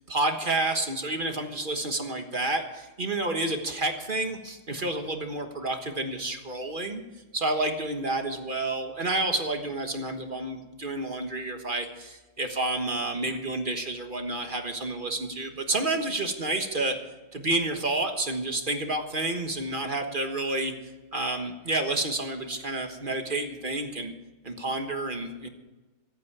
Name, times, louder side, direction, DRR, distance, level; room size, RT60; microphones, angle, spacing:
voice 1, 0.1-7.0 7.3-16.9 17.3-20.7 21.1-24.1 24.4-25.5, right 2 dB, 30° right, 5 dB, 1.2 m, -29 dB
24.5 x 8.5 x 4.8 m, 1.2 s
omnidirectional pair, 2.3 m